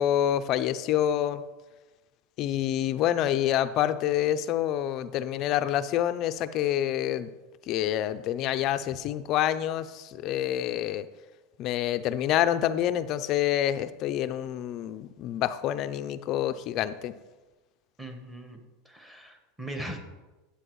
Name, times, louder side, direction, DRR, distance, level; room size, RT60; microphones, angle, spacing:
voice 1, 0.0-1.4 2.4-7.3 7.7-11.1 11.6-17.1, left 11 dB, 40° left, 12 dB, 0.4 m, -27 dB
voice 2, 18.0-18.6 18.8-20.0, right 1 dB, 5° right, 3 dB, 1.0 m, -39 dB
9.6 x 8.2 x 3.1 m, 1.1 s
supercardioid pair, 155°, 0 cm